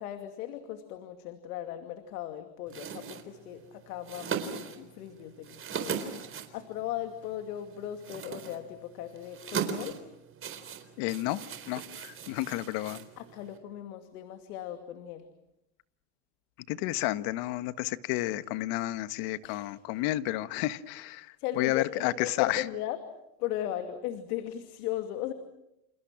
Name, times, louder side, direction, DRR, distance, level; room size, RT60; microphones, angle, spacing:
voice 1, 0.0-10.0 13.2-15.3 19.4-20.0 21.4-23.0 23.4-25.3, left 12 dB, 80° left, 7 dB, 2.6 m, -37 dB
sound 1, 2.7-13.6, right 7 dB, 30° right, 4.0 m, -39 dB
voice 2, 11.0-13.0 16.7-22.6, left 16 dB, 60° left, 13 dB, 1.5 m, -31 dB
29.5 x 29.0 x 6.1 m, 0.84 s
supercardioid pair, 125°, 44 cm